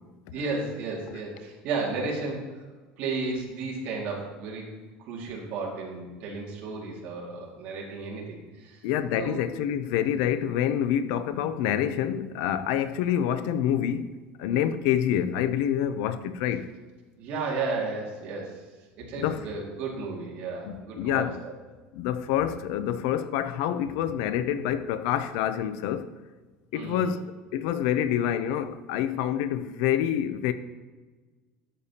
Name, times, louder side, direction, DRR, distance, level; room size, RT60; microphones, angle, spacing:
voice 1, 0.3-2.6 3.0-4.7 5.0-8.8 9.2-9.4 17.2-18.6 19.0-21.5 26.7-27.1, right 3 dB, 50° right, 2.1 m, -33 dB
voice 2, 8.8-16.7 19.1-19.5 20.6-21.4 21.9-26.1 26.7-30.5, left 10 dB, 65° left, 0.5 m, -27 dB
12.0 x 6.6 x 2.8 m
cardioid pair, 175°, 4 cm